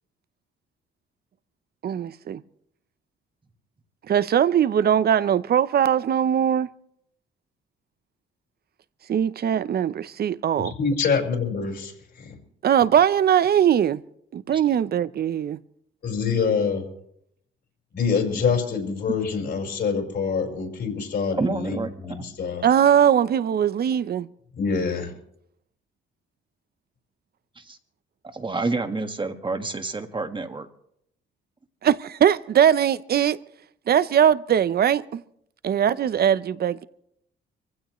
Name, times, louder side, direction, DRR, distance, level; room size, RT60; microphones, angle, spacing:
voice 1, 1.8-2.4 4.1-6.7 9.1-10.7 12.6-14.0 14.3-15.6 22.6-24.3 31.8-33.4 33.9-35.2 35.6-36.8, right 9 dB, 55° right, 0.7 m, -20 dB
voice 2, 10.6-11.9 16.0-16.8 17.9-22.6 24.6-25.1, left 5 dB, 60° left, 5.2 m, -25 dB
voice 3, 21.4-22.3 27.6-27.8 28.3-30.7, right 3 dB, 25° right, 1.5 m, -29 dB
24.0 x 16.0 x 3.1 m
cardioid pair, 90°, 20 cm